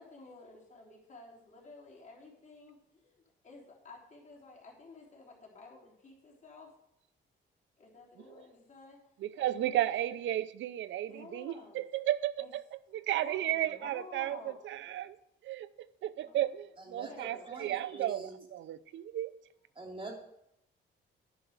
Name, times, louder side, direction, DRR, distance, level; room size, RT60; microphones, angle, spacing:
voice 1, 0.0-6.7 7.8-9.0 9.4-10.0 11.1-11.8 12.4-12.5 13.2-14.6 16.2-16.4 17.0-17.5 18.9-19.0, left 3 dB, 35° left, 3.8 m, -52 dB
voice 2, 9.2-12.6 12.9-15.2 15.4-19.3, right 13 dB, 70° right, 0.6 m, -34 dB
voice 3, 16.9-18.3 19.8-20.1, right 2 dB, 25° right, 2.8 m, -44 dB
10.5 x 5.7 x 6.6 m
cardioid pair, 90°, 20 cm